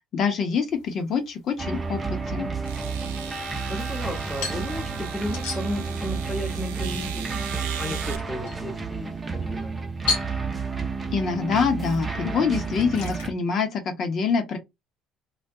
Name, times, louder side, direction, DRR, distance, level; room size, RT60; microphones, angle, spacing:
voice 1, 0.1-2.5 11.1-14.6, left 5 dB, 55° left, 0.7 m, -25 dB
sound 1, 0.7-13.3, left 5 dB, 80° left, 0.9 m, -39 dB
sound 2, 1.6-13.3, right 5 dB, 25° right, 0.6 m, -31 dB
sound 3, 2.6-8.2, right 9 dB, 85° right, 0.3 m, -39 dB
voice 2, 3.7-7.5 7.8-9.8, left 1 dB, 15° left, 0.8 m, -34 dB
2.3 x 2.1 x 2.6 m
hypercardioid pair, 60°, 0 cm